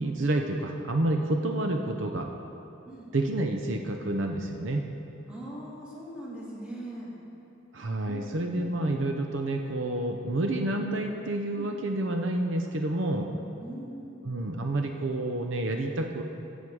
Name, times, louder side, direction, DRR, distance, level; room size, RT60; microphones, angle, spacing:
voice 1, 0.0-2.3 3.1-4.9 7.7-13.3 14.2-16.2, right 1 dB, 70° right, 4 dB, 0.7 m, -29 dB
voice 2, 5.3-7.1 8.1-9.0 11.6-11.7 13.6-14.2, right 1 dB, 5° right, -7 dB, 2.5 m, -41 dB
14.5 x 8.3 x 4.8 m, 2.9 s
head